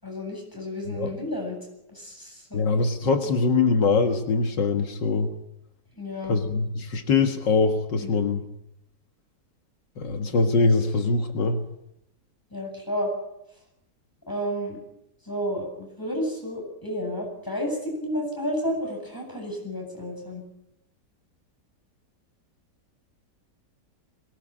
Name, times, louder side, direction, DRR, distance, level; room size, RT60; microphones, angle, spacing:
voice 1, 0.0-1.6 1.9-2.8 6.0-6.4 8.0-8.1 12.5-13.1 14.3-14.8 15.3-20.4, equal, 10° left, 0 dB, 8.1 m, -31 dB
voice 2, 2.5-5.3 6.2-8.4 10.0-11.6, left 4 dB, 80° left, 5 dB, 2.3 m, -23 dB
22.5 x 19.5 x 8.8 m, 0.84 s
omnidirectional pair, 1.9 m